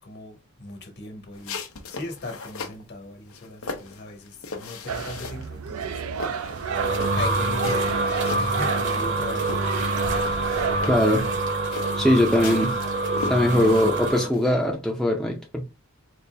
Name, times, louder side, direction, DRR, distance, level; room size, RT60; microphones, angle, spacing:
voice 1, 0.0-1.6 1.9-6.0 6.5-8.1 8.4-9.6, left 2 dB, 50° left, 1.2 m, -38 dB
sound 1, 1.3-2.8 3.3-5.5 5.8-9.1 9.4-14.5, left 4 dB, 75° left, 0.8 m, -37 dB
sound 2, 4.9-11.3, right 6 dB, 85° right, 0.5 m, -32 dB
sound 3, 6.3-14.3, right 2 dB, 55° right, 1.0 m, -26 dB
voice 2, 10.9-11.3 12.0-12.7 13.3-15.6, left 1 dB, ahead, 0.5 m, -21 dB
4.0 x 2.6 x 3.4 m
head